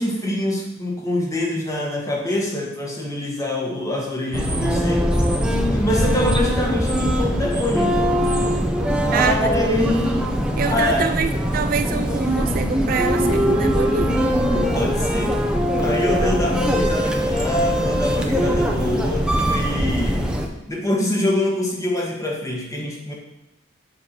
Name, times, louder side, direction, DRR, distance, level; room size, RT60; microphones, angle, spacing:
voice 1, 0.0-5.1 5.7-8.0 9.1-10.0 10.6-11.1 13.8-14.0 14.5-15.4 15.8-20.3 20.7-23.1, left 1 dB, 15° left, -1 dB, 1.5 m, -25 dB
sound 1, 4.3-20.5, equal, 5° right, 0.6 m, -21 dB
voice 2, 9.1-9.5 10.6-14.2, right 6 dB, 45° right, 9 dB, 0.3 m, -25 dB
7.5 x 4.8 x 5.8 m, 0.92 s
head